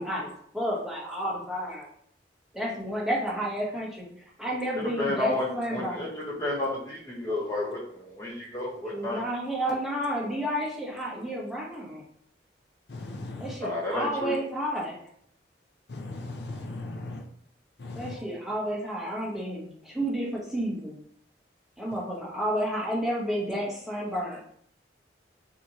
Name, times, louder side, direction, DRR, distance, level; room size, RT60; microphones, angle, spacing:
voice 1, 0.0-1.9 2.5-4.0 4.4-6.1 8.9-12.0 13.4-15.0 17.9-21.0 21.8-24.4, equal, ahead, -5 dB, 1.1 m, -31 dB
voice 2, 5.0-9.3 13.6-14.3, left 2 dB, 15° left, -5 dB, 1.2 m, -31 dB
voice 3, 12.9-13.5 15.9-17.2 17.8-18.2, left 2 dB, 65° left, 2 dB, 0.6 m, -38 dB
6.0 x 2.8 x 3.0 m, 0.65 s
head